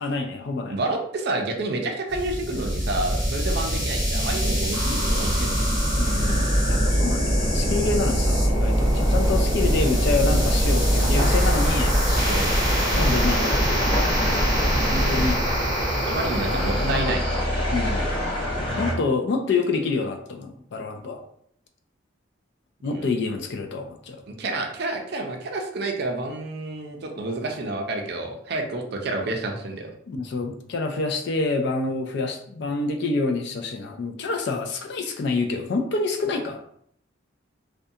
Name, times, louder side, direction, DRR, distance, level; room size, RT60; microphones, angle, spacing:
voice 1, 0.0-0.8 5.9-12.0 12.9-14.1 14.4-14.5 14.9-15.4 16.5-17.2 17.7-18.2 18.8-21.2 22.8-24.2 30.1-36.6, left 3 dB, 60° left, 4 dB, 0.4 m, -27 dB
voice 2, 0.7-5.5 12.2-12.5 16.1-17.2 22.9-23.1 24.3-29.9, right 2 dB, 55° right, 2 dB, 0.5 m, -29 dB
sound 1, 2.1-17.4, equal, 5° right, 1.1 m, -24 dB
sound 2, 5.0-18.9, equal, 30° left, 0.8 m, -26 dB
2.4 x 2.2 x 2.6 m, 0.66 s
head